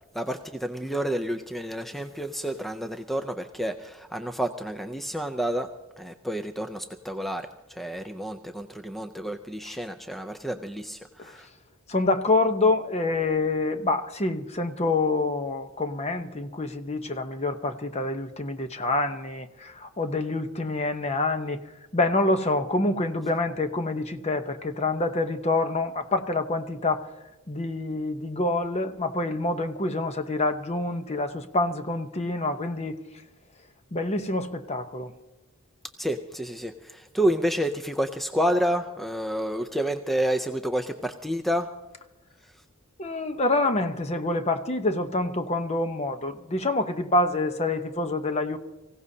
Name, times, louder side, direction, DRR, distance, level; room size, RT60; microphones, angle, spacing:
voice 1, 0.1-5.7 6.0-11.5 36.0-41.7, equal, ahead, 0.5 m, -29 dB
voice 2, 11.9-21.6 21.9-27.1 27.5-33.0 33.9-35.1 43.0-48.6, left 2 dB, 30° left, 0.8 m, -26 dB
25.0 x 16.0 x 2.8 m
head